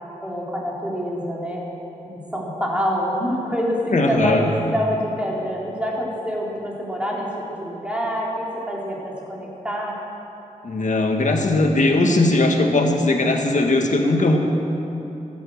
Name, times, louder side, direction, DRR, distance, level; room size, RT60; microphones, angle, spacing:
voice 1, 0.2-1.7 2.0-10.0 12.7-13.0, equal, 10° right, -4 dB, 4.0 m, -26 dB
voice 2, 3.9-4.5 10.6-14.4, left 2 dB, 65° left, 3 dB, 1.7 m, -19 dB
14.5 x 11.5 x 6.6 m, 3.0 s
cardioid pair, 65°, 14 cm